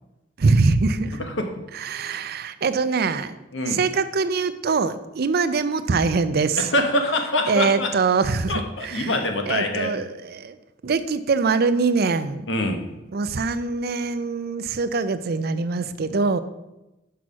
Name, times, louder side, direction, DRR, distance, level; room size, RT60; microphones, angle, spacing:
voice 1, 0.4-1.2 1.8-3.4 3.7-6.6 7.5-9.1 9.5-10.6 10.8-12.5 13.1-16.4, right 4 dB, 55° right, 12 dB, 0.5 m, -23 dB
voice 2, 1.1-1.5 3.5-3.8 6.6-7.9 8.5-9.9 12.5-12.8, left 1 dB, 75° left, 4 dB, 1.2 m, -25 dB
6.2 x 5.7 x 6.1 m, 0.98 s
head